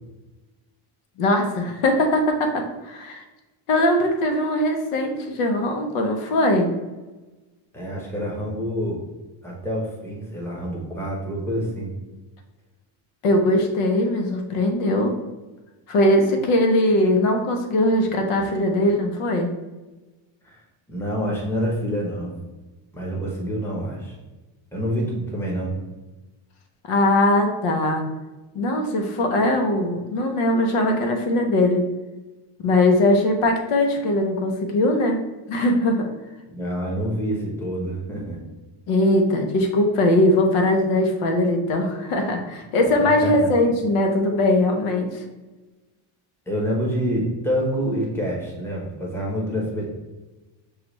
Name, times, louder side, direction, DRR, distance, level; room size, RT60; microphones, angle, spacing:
voice 1, 1.2-3.2 3.7-6.7 13.2-15.2 15.9-19.5 26.9-28.0 28.5-31.8 32.6-35.2 35.5-36.1 38.9-45.1, left 1 dB, 85° left, 3 dB, 0.9 m, -20 dB
voice 2, 7.7-9.0 9.4-11.9 18.4-18.5 18.8-18.9 20.4-20.6 20.9-22.4 22.9-24.1 24.7-25.8 36.5-38.4 43.0-43.5 46.5-49.9, equal, 5° left, -3 dB, 0.8 m, -27 dB
6.5 x 2.4 x 3.0 m, 1.1 s
cardioid pair, 150°, 49 cm